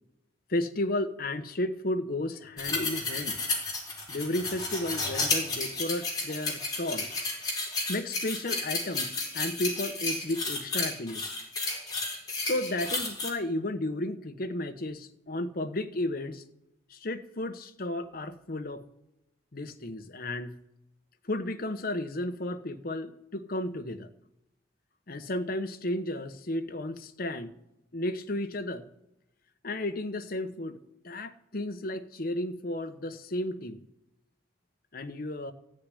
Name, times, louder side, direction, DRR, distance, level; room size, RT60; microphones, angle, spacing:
voice 1, 0.5-3.4 4.1-7.1 7.9-11.3 12.4-16.4 16.9-18.9 19.5-20.6 21.2-24.1 25.1-27.6 27.9-28.9 29.6-33.9 34.9-35.5, left 1 dB, 50° left, 9 dB, 0.9 m, -33 dB
sound 1, 2.6-13.3, left 3 dB, 20° left, 4.6 m, -32 dB
15.0 x 6.6 x 9.9 m, 0.90 s
head